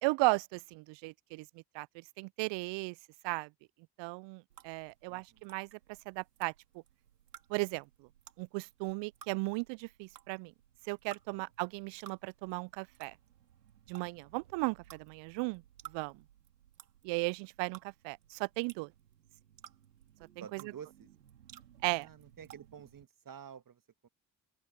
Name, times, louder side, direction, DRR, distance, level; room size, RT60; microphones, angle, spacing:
voice 1, 0.0-1.5 1.7-1.9 2.2-2.9 3.2-3.5 4.0-5.7 6.1-6.5 7.5-7.8 8.4-10.5 10.9-13.1 13.9-15.6 15.9-16.1 17.0-18.9 20.5-20.6 21.8-22.1, right 27 dB, 65° right, 0.6 m, -35 dB
sound 1, 4.5-23.0, right 10 dB, 90° right, 4.0 m, -58 dB
voice 2, 5.1-5.5 11.3-11.5 20.4-21.1 21.8-24.1, right 8 dB, 45° right, 2.1 m, -51 dB
open air
hypercardioid pair, 45°, 47 cm